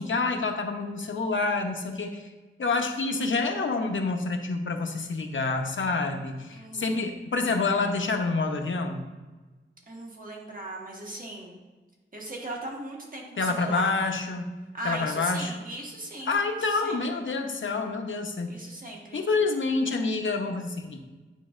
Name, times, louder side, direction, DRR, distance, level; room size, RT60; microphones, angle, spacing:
voice 1, 0.0-2.3 2.6-9.1 13.4-14.6 14.8-15.5 16.3-18.6 19.1-21.0, left 3 dB, 70° left, 4 dB, 0.7 m, -27 dB
voice 2, 6.5-7.0 9.9-11.6 12.1-13.9 14.7-17.0 18.5-19.3, right 2 dB, 40° right, -2 dB, 1.4 m, -38 dB
9.1 x 5.0 x 2.4 m, 1.3 s
wide cardioid pair, 85°, 21 cm